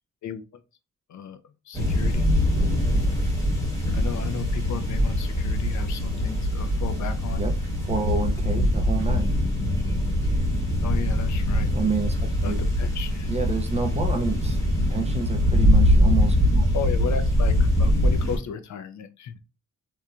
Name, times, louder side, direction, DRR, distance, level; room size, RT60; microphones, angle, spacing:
voice 1, 1.7-2.3 3.9-7.4 10.8-11.7 12.4-13.3 16.7-19.4, left 6 dB, 60° left, 0.4 m, -34 dB
sound 1, 1.7-18.4, left 1 dB, 10° left, 1.0 m, -23 dB
voice 2, 7.8-9.3 11.7-12.2 12.4-12.6 13.3-14.6 14.9-16.7, right 5 dB, 20° right, 0.4 m, -29 dB
3.0 x 2.1 x 2.4 m
wide cardioid pair, 125°, 33 cm